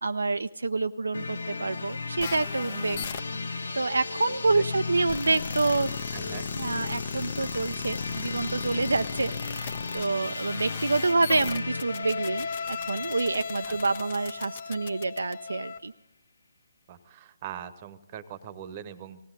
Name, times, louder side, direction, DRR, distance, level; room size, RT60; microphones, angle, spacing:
voice 1, 0.0-3.0 3.7-6.0 6.5-9.7 9.9-15.9, right 3 dB, 70° right, 9 dB, 0.4 m, -27 dB
sound 1, 1.1-14.9, left 4 dB, 65° left, 1.1 m, -36 dB
sound 2, 2.2-15.8, left 6 dB, 40° left, 1.0 m, -38 dB
voice 2, 6.1-6.5 10.2-10.3 13.7-13.8 16.9-19.2, right 9 dB, 30° right, 15 dB, 1.0 m, -42 dB
19.0 x 17.0 x 3.9 m, 0.84 s
figure-of-eight pair, 140°, 0 cm